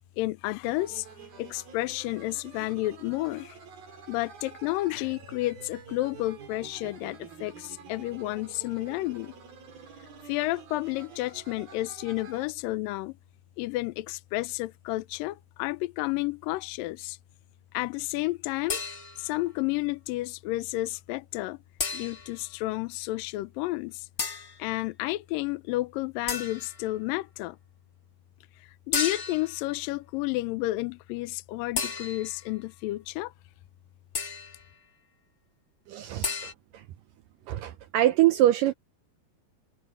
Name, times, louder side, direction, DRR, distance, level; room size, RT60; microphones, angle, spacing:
voice 1, 0.2-1.1 1.4-3.6 4.1-9.3 10.3-13.2 13.6-17.2 17.7-18.8 19.2-21.6 21.9-24.1 24.6-27.6 28.9-33.3, left 19 dB, 85° left, 2.0 m, -31 dB
sound 1, 0.7-12.5, right 7 dB, 65° right, 6.2 m, -48 dB
sound 2, 18.7-19.4 21.8-22.4 24.2-24.6 26.3-26.8 28.9-29.6 31.8-32.5 34.1-34.6 36.2-36.5, left 5 dB, 45° left, 1.2 m, -33 dB
voice 2, 35.9-36.8 37.5-38.7, right 13 dB, 85° right, 1.9 m, -24 dB
omnidirectional pair, 4.8 m